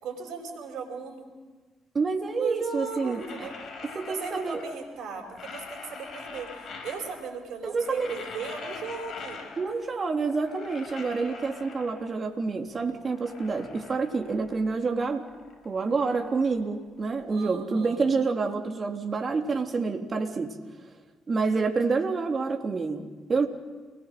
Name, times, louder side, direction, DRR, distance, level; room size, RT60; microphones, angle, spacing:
voice 1, 0.0-1.3 2.4-3.5 3.9-9.4 17.3-18.0, right 5 dB, 70° right, -2 dB, 5.1 m, -37 dB
voice 2, 1.9-3.5 4.0-4.6 7.6-8.1 9.6-15.3 15.6-20.5 21.3-23.5, right 4 dB, 45° right, 2 dB, 3.6 m, -28 dB
sound 1, 2.7-4.9 5.2-7.4 7.7-9.9 10.2-12.3 12.7-14.7 15.0-17.2, left 4 dB, 60° left, 5.3 m, -44 dB
29.5 x 21.0 x 7.8 m, 1.4 s
hypercardioid pair, 45°, 0 cm